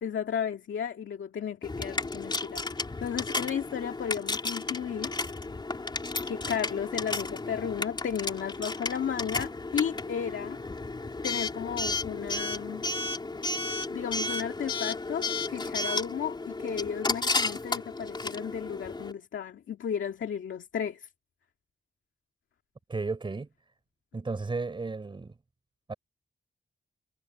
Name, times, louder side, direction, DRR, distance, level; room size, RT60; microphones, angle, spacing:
voice 1, 0.0-2.6 3.0-5.1 6.2-10.6 11.2-12.8 13.9-21.1, left 8 dB, 85° left, 2.1 m, -34 dB
Coin (dropping) / Alarm, 1.6-19.1, left 3 dB, 25° left, 3.8 m, -33 dB
voice 2, 22.9-23.5 24.1-25.3 25.9-26.0, right 3 dB, 25° right, 4.7 m, -33 dB
wide cardioid pair, 175°, 19 cm